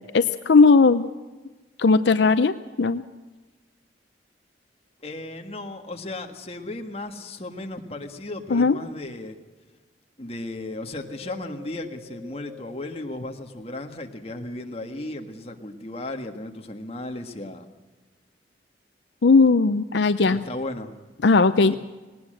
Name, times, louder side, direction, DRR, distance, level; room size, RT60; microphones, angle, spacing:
voice 1, 0.1-1.1 1.8-3.0 8.5-8.8 19.2-20.4 21.2-21.7, left 4 dB, 75° left, 12 dB, 0.6 m, -17 dB
voice 2, 5.0-9.4 10.2-17.7 20.3-20.9 21.7-21.8, left 2 dB, 35° left, 4 dB, 1.6 m, -35 dB
Wind, 10.6-14.1 14.7-15.9 16.5-16.6, left 3 dB, 50° right, 3.3 m, -48 dB
18.5 x 18.5 x 7.7 m, 1.2 s
head